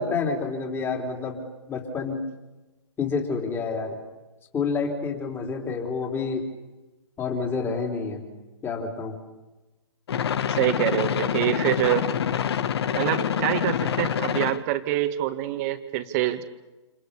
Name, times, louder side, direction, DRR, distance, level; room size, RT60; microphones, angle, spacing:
voice 1, 0.0-2.2 3.0-4.0 4.5-6.5 7.2-8.2 8.6-9.2, left 4 dB, 15° left, 3 dB, 4.0 m, -28 dB
sound 1, 10.1-14.6, left 8 dB, 55° left, 1.6 m, -26 dB
voice 2, 10.5-12.1 13.0-16.4, right 14 dB, 30° right, 10 dB, 2.0 m, -25 dB
29.0 x 29.0 x 6.9 m, 1.1 s
hypercardioid pair, 140°, 16 cm